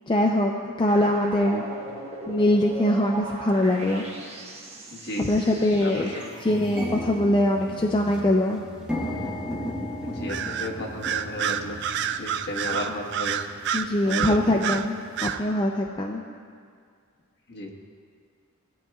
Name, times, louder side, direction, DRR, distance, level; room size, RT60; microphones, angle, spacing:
voice 1, 0.1-1.6 2.3-4.3 5.2-6.1 6.4-8.6 13.7-16.2, left 1 dB, 25° left, 0 dB, 0.5 m, -23 dB
sound 1, 0.9-6.6, right 1 dB, 30° right, 1.3 m, -38 dB
sound 2, 3.8-3.9 4.7-4.9 5.3-5.4 5.7-15.4, left 1 dB, 5° right, 1.1 m, -36 dB
voice 2, 4.9-5.3 5.8-5.9 10.0-11.8 12.2-13.4 14.0-14.4 17.5-17.7, left 1 dB, 50° left, -1 dB, 1.3 m, -33 dB
Bird vocalization bird call bird song, 10.3-10.7 11.0-14.8 15.2-15.4, right 9 dB, 55° right, 0.4 m, -28 dB
17.0 x 9.1 x 2.3 m, 2.1 s
head